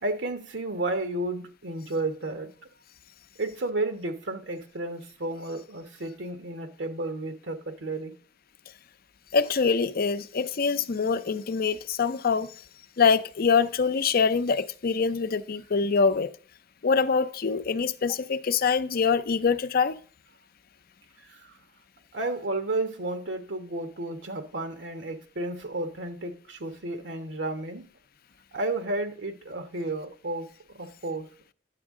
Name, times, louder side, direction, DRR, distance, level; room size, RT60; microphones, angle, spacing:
voice 1, 0.0-2.5 3.4-8.2 21.3-21.5 22.1-27.9 28.5-31.3, right 2 dB, 75° right, 1.2 m, -32 dB
voice 2, 9.3-12.5 13.0-16.3 16.8-20.0, left 5 dB, 55° left, 0.6 m, -24 dB
9.8 x 7.2 x 3.7 m
head